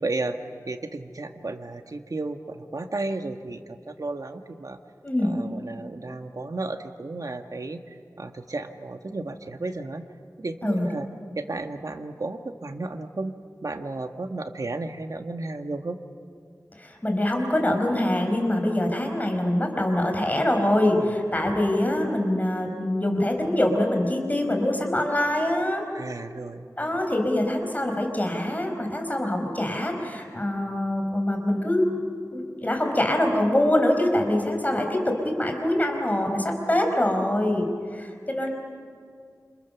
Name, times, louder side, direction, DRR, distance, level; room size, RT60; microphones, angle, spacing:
voice 1, 0.0-4.8 5.2-10.0 10.4-11.1 11.4-13.3 13.6-16.0 21.0-21.1 25.9-26.7, right 2 dB, 70° right, 6 dB, 1.4 m, -33 dB
voice 2, 5.0-5.3 10.6-10.9 16.8-25.8 26.8-31.8 32.3-38.5, left 1 dB, 25° left, 3 dB, 4.9 m, -24 dB
28.5 x 28.5 x 7.0 m, 2.2 s
wide cardioid pair, 65°, 6 cm